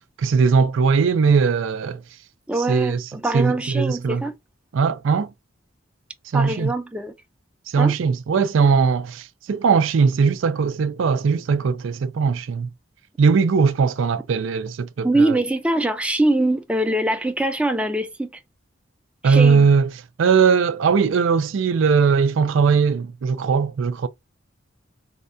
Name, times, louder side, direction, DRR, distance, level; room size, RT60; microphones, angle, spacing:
voice 1, 0.2-2.0 2.7-3.0 3.3-4.2 4.7-5.3 6.3-6.7 7.7-12.7 13.2-15.4 19.2-19.9 20.2-24.1, right 5 dB, 80° right, 0.4 m, -19 dB
voice 2, 2.5-4.4 6.3-7.1 7.8-7.9 15.0-18.3 19.2-19.7, right 2 dB, 5° right, 0.4 m, -23 dB
4.3 x 2.2 x 2.5 m
head